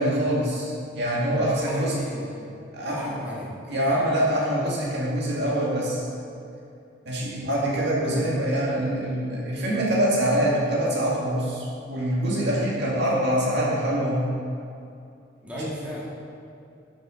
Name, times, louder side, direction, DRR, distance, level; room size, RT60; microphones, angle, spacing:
voice 1, 0.0-2.0 2.7-3.1 3.7-6.0 7.0-14.3, right 1 dB, 65° right, -5 dB, 2.0 m, -24 dB
voice 2, 1.6-2.5 2.8-3.5 15.4-16.0, equal, 10° right, -7 dB, 1.7 m, -36 dB
12.0 x 5.7 x 3.9 m, 2.5 s
head